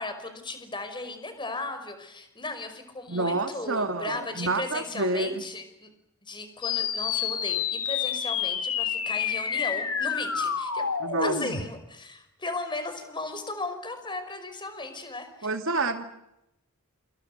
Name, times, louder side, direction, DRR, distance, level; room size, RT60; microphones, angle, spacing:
voice 1, 0.0-5.9 6.2-10.9 11.2-15.5, left 2 dB, 20° left, 5.4 m, -36 dB
voice 2, 3.1-5.4 11.0-11.3 15.4-16.0, right 2 dB, 65° right, 2.3 m, -28 dB
sound 1, 6.6-11.6, left 7 dB, 80° left, 4.2 m, -28 dB
28.0 x 27.5 x 6.7 m
head